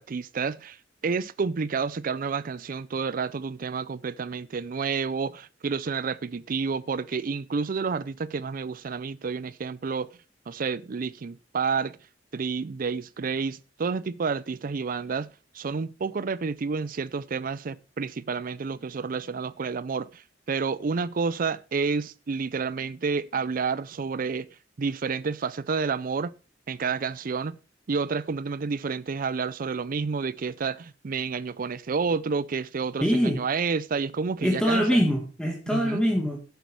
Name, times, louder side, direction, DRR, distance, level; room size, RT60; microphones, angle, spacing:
voice 1, 0.0-10.1 10.5-12.0 12.3-15.3 15.5-24.5 24.8-26.3 26.7-27.6 27.9-35.0 35.7-36.0, right 5 dB, 50° right, 0.5 m, -30 dB
voice 2, 33.0-33.4 34.4-36.4, equal, 5° left, 1.7 m, -23 dB
11.5 x 8.2 x 4.7 m
head